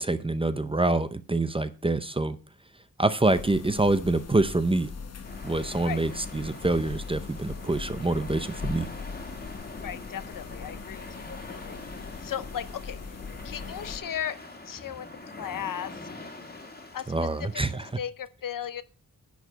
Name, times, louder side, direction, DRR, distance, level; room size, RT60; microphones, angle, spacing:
voice 1, 0.0-2.4 3.0-4.9 5.4-8.9 17.1-17.9, right 2 dB, 15° right, 12 dB, 0.6 m, -26 dB
sound 1, 3.2-14.0, left 5 dB, 45° left, 1.1 m, -40 dB
sound 2, 5.2-17.9, left 2 dB, 25° left, 1.9 m, -44 dB
voice 2, 9.8-13.0 13.4-16.1 16.9-17.1 17.4-17.5 18.0-18.8, left 9 dB, 65° left, 15 dB, 0.7 m, -36 dB
10.5 x 4.9 x 6.6 m, 0.36 s
wide cardioid pair, 145°, 35 cm